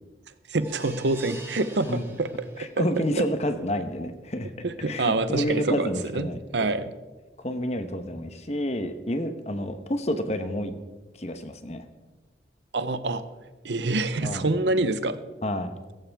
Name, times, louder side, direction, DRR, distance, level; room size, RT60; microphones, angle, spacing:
voice 1, 0.5-2.3 2.6-3.2 4.6-6.3 6.5-6.9 12.7-13.2 13.6-15.2, right 2 dB, 75° right, 13 dB, 0.8 m, -26 dB
sound 1, 0.6-2.9 3.3-3.4 3.8-3.9, right 3 dB, 10° right, 1.3 m, -45 dB
voice 2, 2.6-4.5 4.8-6.7 7.4-10.8 11.2-11.8 14.2-14.4 15.4-15.7, equal, 35° left, 8 dB, 1.0 m, -29 dB
16.5 x 14.5 x 3.5 m, 1.2 s
head